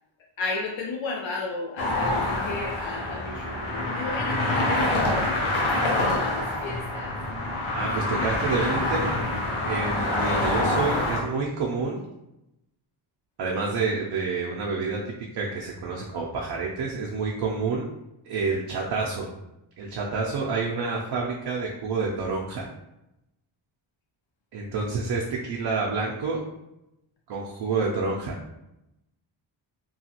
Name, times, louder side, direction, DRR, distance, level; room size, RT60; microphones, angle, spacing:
voice 1, 0.4-7.1 7.8-8.3, left 3 dB, 70° left, -1 dB, 0.5 m, -34 dB
sound 1, 1.8-11.2, left 1 dB, 85° left, 0.9 m, -26 dB
voice 2, 7.7-9.2 9.6-12.0 13.4-17.9 18.3-19.3 19.8-22.6 24.5-26.4 27.3-28.4, right 4 dB, 60° right, -2 dB, 0.5 m, -28 dB
2.9 x 2.3 x 2.8 m, 0.91 s
wide cardioid pair, 105°, 48 cm